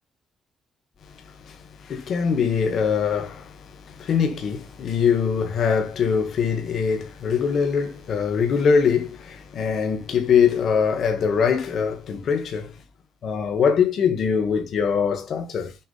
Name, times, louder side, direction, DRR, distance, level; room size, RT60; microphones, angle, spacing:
voice 1, 1.0-12.8 13.2-15.8, left 6 dB, 60° left, 2.0 m, -23 dB
7.6 x 3.2 x 5.7 m
cardioid pair, 90°, 0 cm